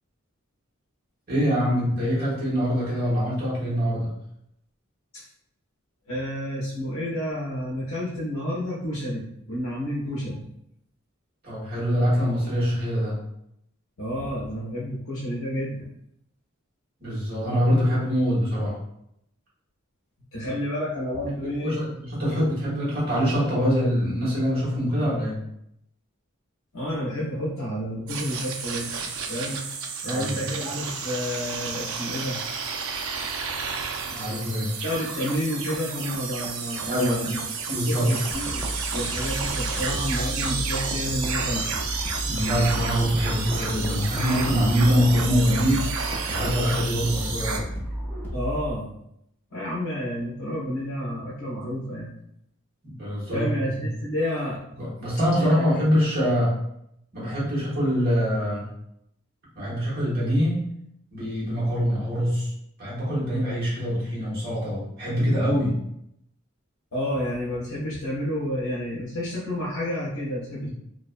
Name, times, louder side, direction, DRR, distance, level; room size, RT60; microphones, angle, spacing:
voice 1, 1.3-4.1 11.4-13.2 17.0-18.8 21.6-25.4 30.1-30.4 34.0-34.7 36.9-37.3 37.7-38.1 42.2-45.9 46.3-47.6 52.8-53.8 54.8-56.5 57.1-58.7 59.5-60.7 61.1-62.5 62.8-65.8 70.6-70.7, equal, 45° right, -8 dB, 1.1 m, -24 dB
voice 2, 6.1-10.5 14.0-15.9 20.3-21.8 26.7-29.6 30.0-32.4 34.2-34.3 34.8-37.4 37.9-41.6 48.3-48.9 49.5-52.1 53.3-54.6 55.4-55.7 66.9-70.7, equal, 65° left, -7 dB, 0.6 m, -30 dB
sound 1, 28.1-47.6, right 5 dB, 70° right, 0.3 m, -31 dB
sound 2, 38.3-48.7, equal, 10° left, 0.4 m, -33 dB
2.5 x 2.1 x 2.4 m, 0.76 s
head